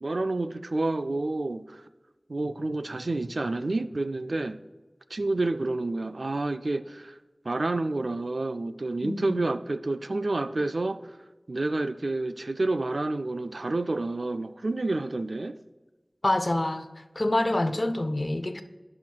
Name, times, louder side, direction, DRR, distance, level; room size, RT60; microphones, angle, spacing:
voice 1, 0.0-1.9 2.3-4.6 5.1-7.1 7.4-11.2 11.5-15.6, right 2 dB, 80° right, 0.3 m, -29 dB
voice 2, 9.0-9.4 16.2-16.9 17.2-18.6, left 1 dB, 50° left, 0.5 m, -26 dB
16.5 x 5.8 x 2.3 m
wide cardioid pair, 45°, 0 cm